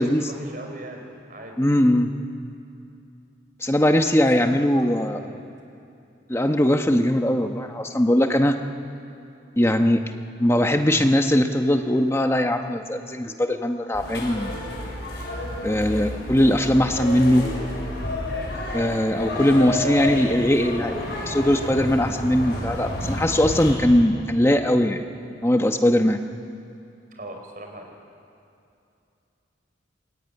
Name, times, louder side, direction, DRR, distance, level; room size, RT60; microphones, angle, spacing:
voice 1, 0.0-1.5 4.3-5.5 27.1-27.9, right 1 dB, 45° right, 2 dB, 4.5 m, -39 dB
voice 2, 1.6-2.1 3.6-5.2 6.3-8.6 9.6-10.0 10.4-14.6 15.6-17.5 18.7-21.0 21.3-25.0 25.4-26.2, left 1 dB, 15° left, 5 dB, 1.0 m, -20 dB
sound 1, 13.9-23.7, left 1 dB, 60° left, 7.2 m, -30 dB
26.0 x 20.5 x 9.8 m, 2.6 s
head